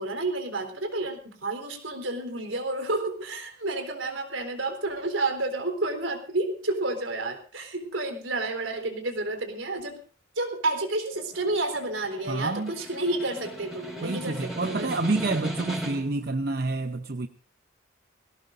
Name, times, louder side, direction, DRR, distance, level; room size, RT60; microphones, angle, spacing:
voice 1, 0.0-10.0 10.4-14.9, right 2 dB, 75° right, 6 dB, 3.8 m, -30 dB
Snare drum, 11.3-16.2, right 1 dB, ahead, 5.2 m, -37 dB
voice 2, 12.3-12.7 14.0-17.3, right 3 dB, 50° right, 7 dB, 0.7 m, -28 dB
21.0 x 17.5 x 2.6 m, 0.39 s
head